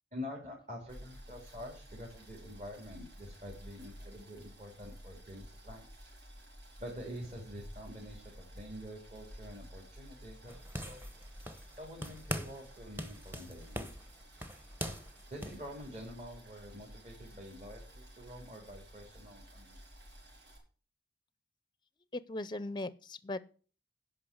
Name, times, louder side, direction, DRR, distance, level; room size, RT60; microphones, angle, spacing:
voice 1, 0.1-5.9 6.8-11.0 11.8-13.9 15.3-19.8, equal, 40° right, -1 dB, 2.7 m, -47 dB
Boiling, 0.9-20.6, equal, 75° right, 4.4 m, -53 dB
sound 1, 10.5-11.8 12.0-12.7 13.0-15.6, equal, 10° right, 0.9 m, -41 dB
voice 2, 22.1-23.4, left 2 dB, 25° left, 17 dB, 0.5 m, -38 dB
10.0 x 5.5 x 7.9 m, 0.40 s
head